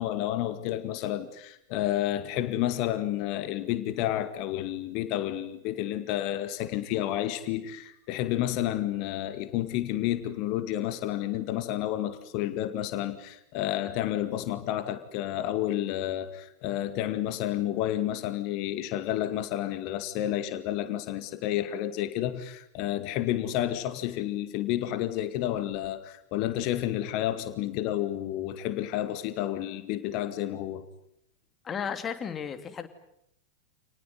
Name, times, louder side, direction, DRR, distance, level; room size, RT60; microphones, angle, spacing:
voice 1, 0.0-30.8, left 13 dB, 45° left, 2.1 m, -30 dB
voice 2, 31.6-32.9, left 7 dB, 25° left, 2.8 m, -34 dB
28.5 x 20.0 x 9.5 m
figure-of-eight pair, 90°, 0 cm